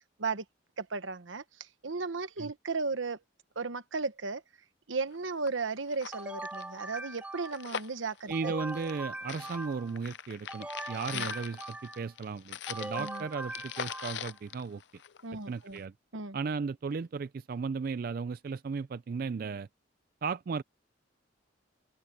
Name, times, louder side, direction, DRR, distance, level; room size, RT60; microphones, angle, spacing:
voice 1, 0.8-1.4 1.8-3.2 3.6-4.4 4.9-8.5 11.1-11.3 13.0-13.2 15.2-15.8 16.1-16.4, right 4 dB, 80° right, 1.1 m, -35 dB
sound 1, 5.1-5.2 5.5-5.6 5.9-9.0 9.3-15.4 15.8-15.9, left 8 dB, 60° left, 0.6 m, -41 dB
sound 2, 6.1-7.8 8.3-10.0 10.5-12.1 12.7-14.4, right 1 dB, 5° right, 1.1 m, -41 dB
voice 2, 8.3-14.8 15.5-15.9 16.3-19.7 20.2-20.6, right 5 dB, 50° right, 0.3 m, -35 dB
open air
head